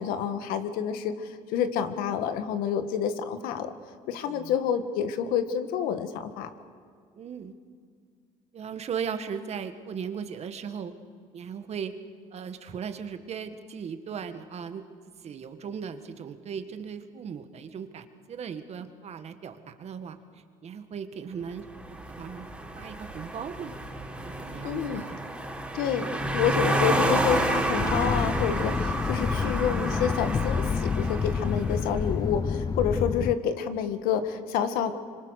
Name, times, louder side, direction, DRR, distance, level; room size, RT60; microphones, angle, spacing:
voice 1, 0.0-3.7 4.1-6.5 24.6-25.0 25.7-34.9, left 8 dB, 80° left, 9 dB, 1.7 m, -28 dB
voice 2, 7.2-7.5 8.5-10.9 11.3-11.9 12.3-14.8 15.2-20.2 20.6-21.6 21.9-22.5 22.8-23.7 24.2-25.2 26.4-26.8, right 7 dB, 45° right, 9 dB, 1.8 m, -37 dB
sound 1, 21.6-31.9, right 1 dB, 5° right, 3.8 m, -30 dB
sound 2, 27.8-33.3, left 5 dB, 25° left, 0.6 m, -28 dB
26.0 x 25.5 x 6.6 m, 2.1 s
cardioid pair, 100°, 15 cm